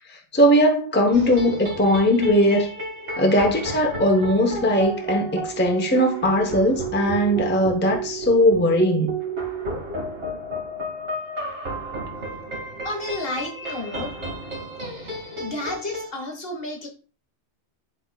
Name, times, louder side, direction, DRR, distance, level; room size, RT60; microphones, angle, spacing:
voice 1, 0.3-2.7 3.2-9.2, equal, 10° left, 0.7 m, -19 dB
sound 1, 1.1-16.1, right 2 dB, 75° right, 2.2 m, -32 dB
voice 2, 12.8-14.1 15.0-15.1 15.4-16.9, left 2 dB, 55° left, 1.7 m, -31 dB
10.5 x 3.9 x 2.2 m
omnidirectional pair, 1.2 m